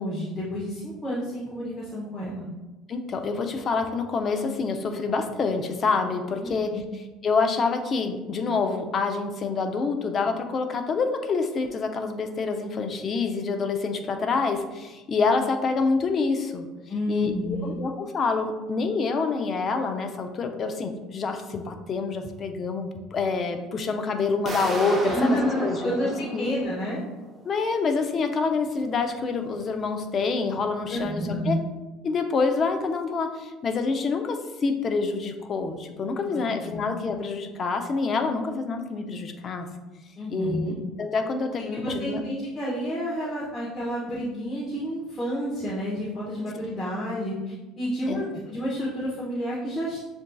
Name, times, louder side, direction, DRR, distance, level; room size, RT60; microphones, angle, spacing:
voice 1, 0.0-2.5 6.4-6.8 16.9-17.8 25.0-27.0 30.9-31.6 36.3-36.8 40.2-40.8 41.6-50.0, equal, 20° left, -6 dB, 0.9 m, -30 dB
voice 2, 2.9-6.7 7.2-16.7 17.1-26.5 27.4-31.6 32.0-39.7 40.3-42.2 48.1-48.2, left 4 dB, 40° left, 6 dB, 0.5 m, -27 dB
sound 1, 24.5-27.3, right 2 dB, 20° right, 0.8 m, -33 dB
7.0 x 2.6 x 2.3 m, 1.1 s
supercardioid pair, 110°, 0 cm